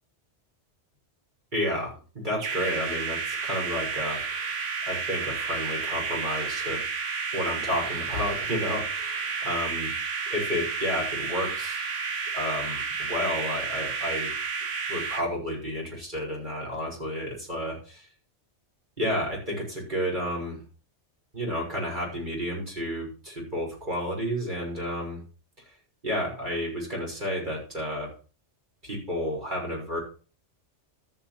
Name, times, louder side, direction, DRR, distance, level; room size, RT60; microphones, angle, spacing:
voice 1, 1.5-4.5 4.9-6.8 7.3-9.9 10.3-11.8 12.3-14.3 14.9-18.1 19.0-20.6 21.3-25.2 26.0-28.1 28.8-30.0, equal, 40° right, -2 dB, 6.6 m, -31 dB
sound 1, 2.4-15.2, right 5 dB, 80° right, 1.6 m, -31 dB
13.0 x 8.3 x 6.0 m, 0.37 s
omnidirectional pair, 1.2 m